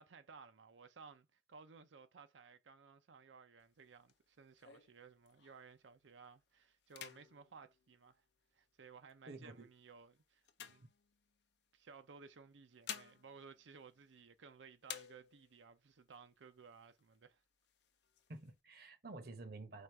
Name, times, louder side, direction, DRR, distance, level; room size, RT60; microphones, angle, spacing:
voice 1, 0.0-8.2 8.5-10.9 11.7-17.4, right 5 dB, 80° right, 0.5 m, -58 dB
sound 1, 3.6-5.8 6.2-6.5 6.8-8.7 9.4-11.6 12.4-14.5 14.8-15.7 16.1-16.2 16.5-17.2 17.6-18.5, left 9 dB, 60° left, 0.6 m, -53 dB
voice 2, 9.3-9.7 18.3-19.8, right 2 dB, 55° right, 0.8 m, -50 dB
4.9 x 2.5 x 4.4 m
head